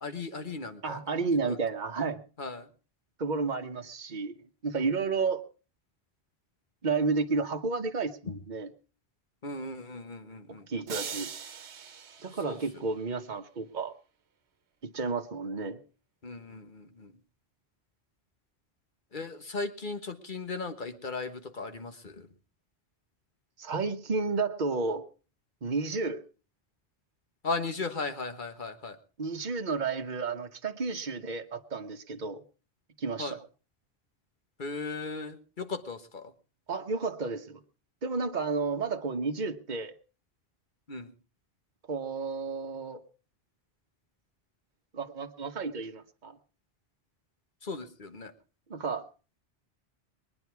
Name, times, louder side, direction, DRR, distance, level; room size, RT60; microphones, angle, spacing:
voice 1, 0.0-1.0 1.5-1.6 2.4-2.7 4.7-4.9 8.3-8.4 9.4-10.6 12.4-12.6 16.2-17.1 19.1-22.3 27.4-29.0 33.2-33.4 34.6-36.3 40.9-41.1 47.6-48.3, left 3 dB, 50° left, 8 dB, 1.5 m, -37 dB
voice 2, 0.8-2.2 3.2-5.4 6.8-8.7 10.5-11.3 12.2-13.9 14.8-15.8 23.6-25.0 25.6-26.2 29.2-32.4 33.0-33.4 36.7-37.6 38.0-39.9 41.9-43.0 44.9-46.4 48.7-49.0, right 4 dB, 45° right, 5 dB, 1.2 m, -32 dB
sound 1, 10.9-13.1, right 7 dB, 75° right, 1.2 m, -41 dB
22.0 x 9.8 x 4.6 m, 0.37 s
omnidirectional pair, 1.1 m